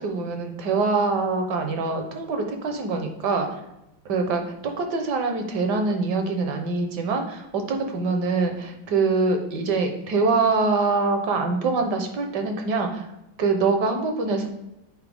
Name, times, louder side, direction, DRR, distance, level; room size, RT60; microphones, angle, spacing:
voice 1, 0.0-3.6 4.0-13.1 13.4-14.5, right 4 dB, 65° right, 4 dB, 1.5 m, -24 dB
8.2 x 4.5 x 3.5 m, 0.89 s
omnidirectional pair, 2.1 m